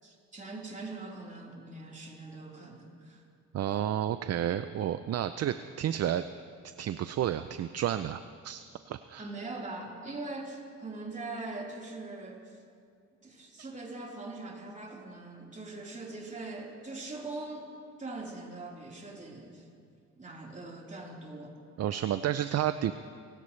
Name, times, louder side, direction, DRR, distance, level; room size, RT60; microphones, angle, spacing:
voice 1, 0.0-3.2 9.2-12.6 13.2-17.7 18.0-19.7 20.2-21.6, right 2 dB, 25° right, -3 dB, 4.1 m, -42 dB
voice 2, 3.5-6.2 6.8-9.3 13.6-13.7 21.8-22.9, right 11 dB, 55° right, 11 dB, 0.6 m, -31 dB
25.5 x 17.0 x 3.3 m, 2.3 s
cardioid pair, 90°, 30 cm